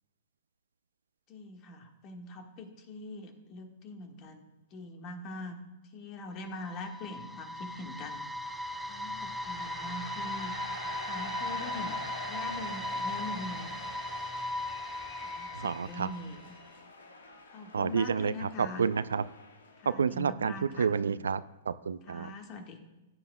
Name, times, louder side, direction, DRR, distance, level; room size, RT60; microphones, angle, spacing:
voice 1, 1.3-5.6 5.9-8.2 8.6-10.6 11.0-13.7 15.2-16.5 17.5-18.9 19.8-20.9 22.1-22.8, left 2 dB, 40° left, 4 dB, 1.5 m, -43 dB
sound 1, 6.4-16.5, left 1 dB, 5° right, 0.5 m, -38 dB
sound 2, 8.4-19.9, left 3 dB, 85° left, 1.4 m, -45 dB
voice 2, 15.5-16.1 17.7-19.2 20.0-22.3, right 6 dB, 80° right, 16 dB, 0.4 m, -30 dB
16.0 x 9.8 x 2.2 m, 1.0 s
hypercardioid pair, 115°, 0 cm